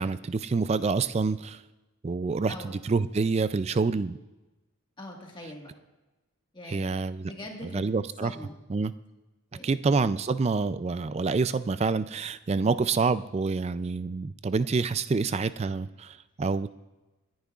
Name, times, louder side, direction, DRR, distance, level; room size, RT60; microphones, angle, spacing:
voice 1, 0.0-1.6 2.0-4.2 6.7-7.3 7.6-8.3 8.7-8.9 9.6-16.7, right 4 dB, 30° right, 14 dB, 0.3 m, -27 dB
voice 2, 5.0-5.7 6.5-7.9 8.2-8.5 9.5-9.8, left 1 dB, 20° left, 0 dB, 1.6 m, -42 dB
27.5 x 10.5 x 2.4 m, 1.1 s
head